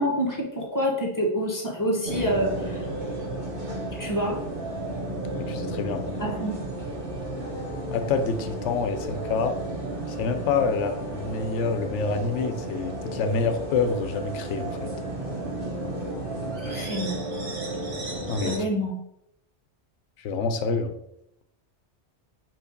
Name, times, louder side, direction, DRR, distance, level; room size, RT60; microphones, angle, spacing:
voice 1, 0.0-2.9 4.0-4.4 6.2-6.6 16.6-17.2 18.4-19.0, equal, 15° left, -2 dB, 1.3 m, -27 dB
sound 1, 2.0-18.6, right 1 dB, 50° right, 1.4 m, -33 dB
voice 2, 5.4-6.4 7.9-9.5 10.1-14.9 18.3-18.6 20.2-20.9, left 5 dB, 90° left, 8 dB, 1.0 m, -27 dB
4.7 x 3.9 x 5.1 m, 0.79 s
omnidirectional pair, 1.2 m